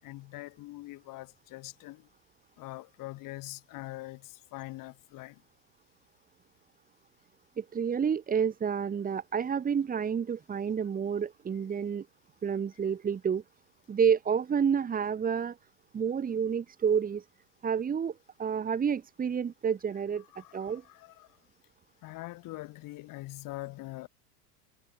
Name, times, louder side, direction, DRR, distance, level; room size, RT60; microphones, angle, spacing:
voice 1, 0.0-2.1 2.6-5.4 20.3-21.3 22.0-24.1, left 19 dB, 40° left, 4.6 m, -43 dB
voice 2, 7.6-12.0 12.4-13.4 13.9-15.6 15.9-17.2 17.6-18.1 18.4-20.8, right 7 dB, 20° right, 1.5 m, -29 dB
figure-of-eight pair, 85°, 47 cm